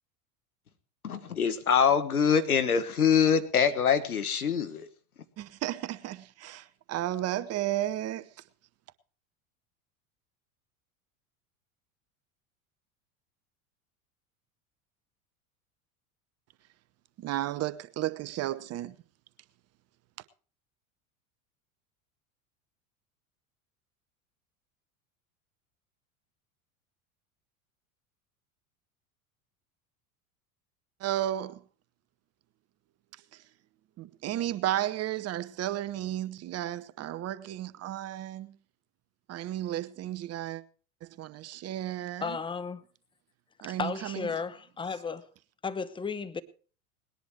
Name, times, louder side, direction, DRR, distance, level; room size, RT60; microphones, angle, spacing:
voice 1, 1.0-4.9, left 7 dB, 85° left, 1.4 m, -24 dB
voice 2, 5.4-8.3 17.2-18.9 31.0-31.6 34.0-38.5 39.3-40.6 41.2-42.3 43.6-44.3, right 13 dB, 35° right, 0.9 m, -33 dB
voice 3, 42.2-42.8 43.6-45.2 45.6-46.4, left 5 dB, 10° left, 0.9 m, -34 dB
19.5 x 10.5 x 4.6 m
hypercardioid pair, 80°, 43 cm